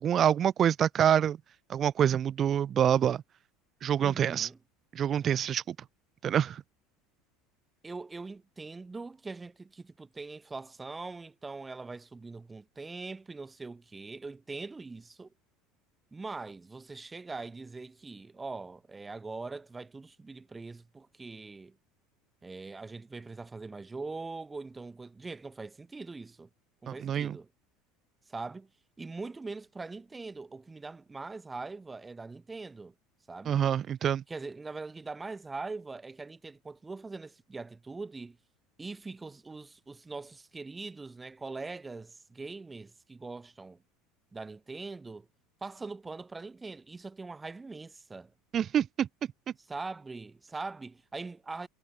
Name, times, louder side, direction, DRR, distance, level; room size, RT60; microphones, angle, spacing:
voice 1, 0.0-1.4 1.7-3.2 3.8-4.5 4.9-5.8 6.2-6.6 26.9-27.4 33.5-34.2 48.5-49.1, right 9 dB, 35° right, 0.5 m, -26 dB
voice 2, 4.0-4.6 5.1-5.4 7.8-15.3 16.1-21.8 22.4-26.5 26.8-27.5 28.3-28.7 29.0-32.9 33.3-33.6 34.3-38.4 38.8-43.8 44.3-45.3 45.6-48.3 49.7-51.7, right 3 dB, 15° right, 7.8 m, -42 dB
supercardioid pair, 130°, 0 cm